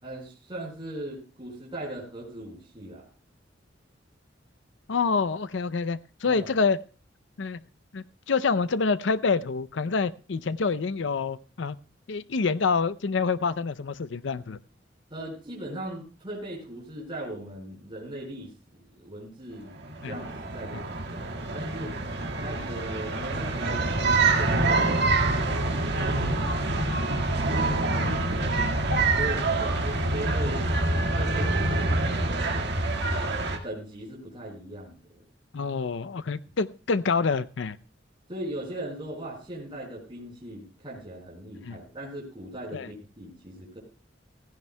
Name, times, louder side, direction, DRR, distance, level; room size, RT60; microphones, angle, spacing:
voice 1, 0.0-3.1 6.2-6.5 15.1-18.5 18.8-19.7 20.1-22.0 22.4-25.5 26.0-27.3 29.2-30.7 31.1-32.7 33.6-35.2 38.3-43.8, right 1 dB, 25° right, -4 dB, 4.6 m, -39 dB
voice 2, 4.9-6.8 7.4-7.6 7.9-11.8 12.1-14.6 20.0-20.2 28.0-28.8 35.5-37.8 41.6-41.8 42.7-42.9, left 4 dB, 70° left, 16 dB, 0.5 m, -27 dB
sound 1, 19.8-33.6, right 2 dB, 65° right, 1.8 m, -26 dB
16.0 x 15.5 x 2.2 m, 0.35 s
head